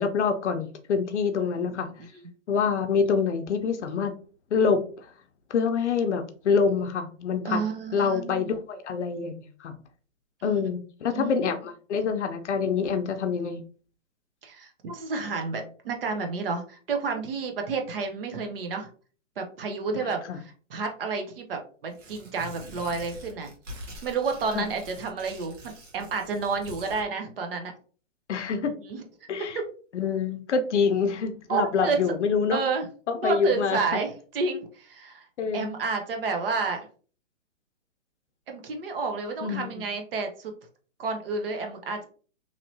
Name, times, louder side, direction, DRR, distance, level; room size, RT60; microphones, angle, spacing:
voice 1, 0.0-1.9 2.5-4.2 4.5-5.1 5.5-7.6 7.9-9.8 10.4-13.6 19.9-20.4 24.5-24.7 28.3-28.7 29.3-29.6 29.9-32.6 33.1-33.8 35.4-35.7 39.4-39.9, left 5 dB, 60° left, 8 dB, 0.6 m, -26 dB
voice 2, 1.5-1.8 7.4-8.5 10.4-10.6 11.1-11.3 14.4-18.9 19.4-20.2 20.7-23.5 24.0-27.7 28.8-29.0 29.5-29.7 31.5-32.0 32.5-32.9 33.1-35.3 35.5-36.9 38.5-40.5 41.0-42.1, right 4 dB, 45° right, 4 dB, 0.7 m, -30 dB
Tearing, 21.9-27.0, equal, 65° right, 1.3 m, -45 dB
3.0 x 2.8 x 2.6 m, 0.41 s
hypercardioid pair, 155°, 39 cm